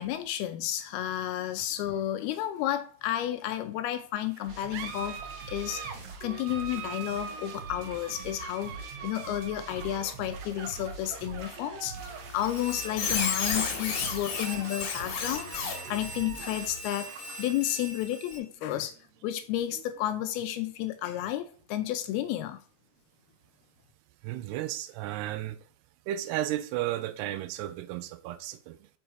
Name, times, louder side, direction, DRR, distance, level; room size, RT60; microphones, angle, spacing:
voice 1, 0.0-5.2 5.5-19.0 19.2-22.6, left 12 dB, 80° left, 2.5 m, -32 dB
sound 1, 4.3-21.3, right 6 dB, 75° right, 2.0 m, -45 dB
sound 2, 4.5-16.8, right 4 dB, 45° right, 2.4 m, -45 dB
Squeak, 12.4-18.4, left 4 dB, 65° left, 3.3 m, -34 dB
voice 2, 24.2-25.7 26.1-28.9, right 13 dB, 90° right, 2.7 m, -34 dB
6.1 x 5.4 x 4.6 m
omnidirectional pair, 4.7 m